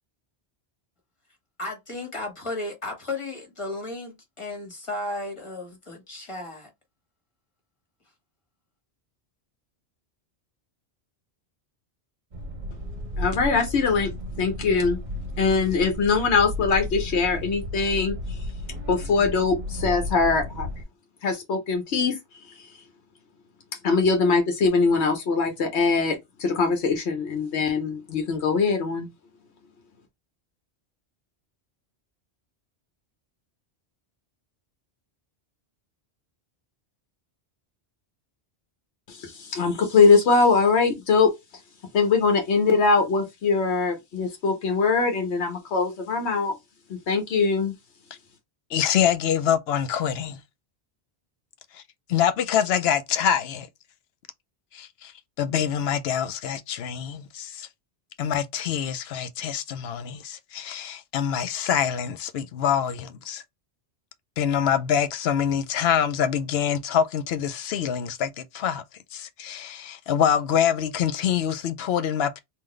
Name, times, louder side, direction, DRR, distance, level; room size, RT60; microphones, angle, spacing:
voice 1, 1.6-6.7, left 2 dB, 30° left, 1.4 m, -34 dB
sound 1, 12.3-20.8, left 1 dB, 45° right, 1.1 m, -33 dB
voice 2, 13.2-14.1 14.4-15.0 15.4-18.1 18.9-20.7 21.2-22.2 23.8-29.1 39.1-41.3 41.9-46.6 46.9-47.7, left 4 dB, 90° left, 1.1 m, -22 dB
voice 3, 48.7-50.4 51.7-51.8 52.1-53.7 54.7-55.1 55.4-57.7 58.2-63.4 64.4-68.8 69.1-72.4, left 8 dB, 70° left, 0.8 m, -25 dB
3.8 x 2.5 x 3.1 m
omnidirectional pair, 1.1 m